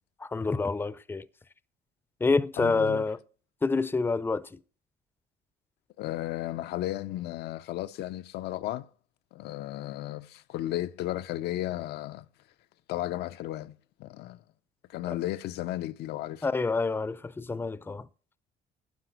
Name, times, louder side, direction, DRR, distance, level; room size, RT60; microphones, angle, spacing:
voice 1, 0.2-1.3 2.2-3.2 3.6-4.6 16.4-18.1, left 3 dB, 15° left, 0.5 m, -27 dB
voice 2, 2.6-3.1 6.0-8.9 9.3-12.3 12.9-14.4 14.9-16.5, left 14 dB, 75° left, 0.6 m, -34 dB
12.0 x 4.8 x 8.0 m
cardioid pair, 110°, 17 cm